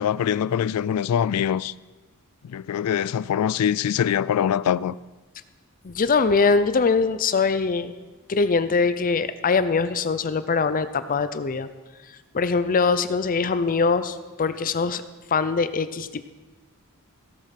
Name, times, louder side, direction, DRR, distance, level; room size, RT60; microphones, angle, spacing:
voice 1, 0.0-1.7 2.4-4.9, left 9 dB, 90° left, 0.3 m, -23 dB
voice 2, 5.8-7.9 8.3-11.7 12.3-15.0 15.3-16.2, left 4 dB, 40° left, 0.5 m, -22 dB
16.5 x 7.4 x 5.8 m
head